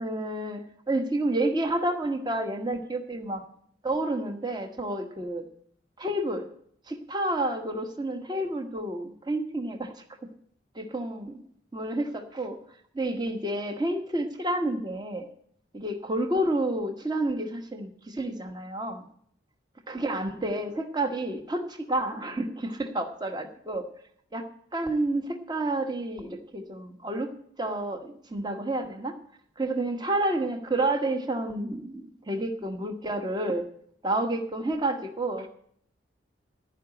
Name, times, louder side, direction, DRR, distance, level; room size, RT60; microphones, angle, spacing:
voice 1, 0.0-3.4 3.8-5.5 6.0-6.5 6.9-9.9 10.7-11.4 11.7-12.6 12.9-15.3 15.7-19.1 19.9-23.8 24.3-24.5 24.7-27.3 27.6-29.1 29.6-33.7 34.0-35.5, right 1 dB, 20° right, 6 dB, 1.1 m, -30 dB
15.0 x 5.0 x 8.6 m, 0.63 s
head